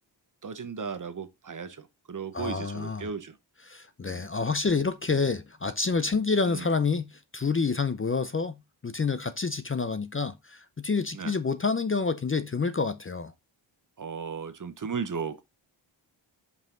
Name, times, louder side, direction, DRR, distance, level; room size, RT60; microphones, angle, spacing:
voice 1, 0.4-3.4 4.0-4.3 6.5-6.7 11.1-11.4 14.0-15.4, right 5 dB, 40° right, 0.9 m, -36 dB
voice 2, 2.3-3.1 3.7-8.5 8.8-13.3, left 4 dB, 30° left, 0.6 m, -28 dB
5.6 x 5.2 x 3.8 m
wide cardioid pair, 100°, 46 cm